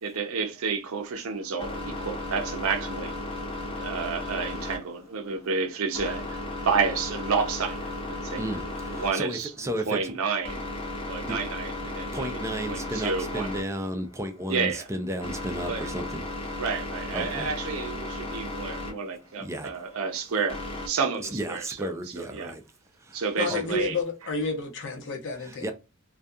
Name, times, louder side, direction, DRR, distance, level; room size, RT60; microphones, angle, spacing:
voice 1, 0.0-3.1 3.8-8.4 8.9-10.6 11.1-12.4 12.7-13.5 14.5-14.9 15.7-15.9 16.6-22.6 23.1-24.0, right 5 dB, 70° right, 0.6 m, -30 dB
sound 1, 1.0-20.9, left 2 dB, 25° left, 0.7 m, -36 dB
voice 2, 8.4-10.2 11.3-11.4 12.1-16.2 17.1-17.5 19.4-19.7 21.2-22.6 23.1-23.8 25.4-25.7, right 1 dB, 15° right, 0.4 m, -33 dB
voice 3, 23.4-25.7, left 3 dB, 55° left, 0.8 m, -30 dB
2.3 x 2.3 x 2.6 m
head